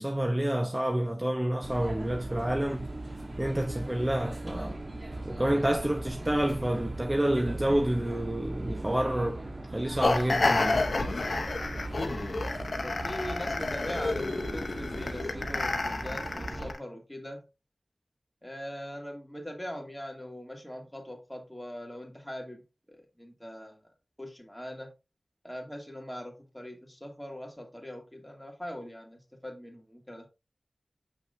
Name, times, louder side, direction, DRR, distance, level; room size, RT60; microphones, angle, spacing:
voice 1, 0.0-2.9 3.4-4.8 5.3-9.4 9.7-10.9, right 1 dB, 25° right, 0.8 m, -28 dB
sound 1, 1.6-16.7, right 2 dB, 50° right, 1.2 m, -38 dB
sound 2, 10.0-16.8, left 3 dB, 70° left, 0.7 m, -30 dB
voice 2, 12.7-17.4 18.4-22.6 22.9-23.8 24.2-24.9 25.4-30.3, equal, 10° left, 2.4 m, -41 dB
7.5 x 5.8 x 2.6 m
wide cardioid pair, 50°, 0 cm